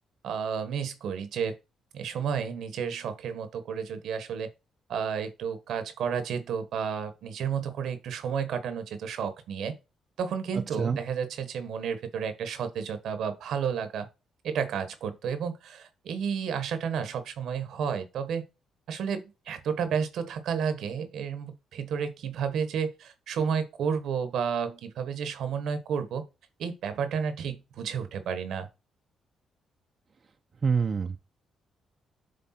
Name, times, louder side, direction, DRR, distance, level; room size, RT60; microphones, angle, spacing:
voice 1, 0.2-1.6 1.9-4.5 4.9-9.7 10.2-14.1 14.4-18.4 18.9-26.2 26.6-28.7, right 7 dB, 75° right, 1.1 m, -31 dB
voice 2, 30.6-31.2, right 5 dB, 45° right, 0.7 m, -26 dB
7.7 x 3.4 x 4.3 m
cardioid pair, 75°, 0 cm